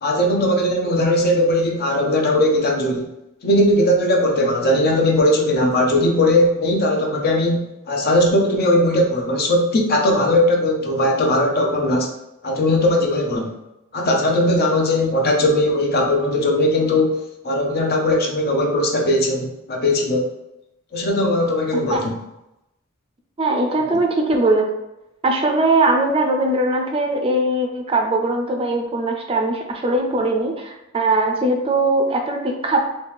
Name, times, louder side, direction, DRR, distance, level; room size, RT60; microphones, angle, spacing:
voice 1, 0.0-3.1 3.4-12.1 12.4-13.6 13.9-17.1 17.4-20.3 20.9-22.1, left 1 dB, 50° left, 1 dB, 0.6 m, -19 dB
voice 2, 21.7-22.1 23.4-24.7 25.2-32.8, right 2 dB, 25° right, 2 dB, 0.4 m, -20 dB
3.1 x 2.7 x 3.4 m, 0.90 s
head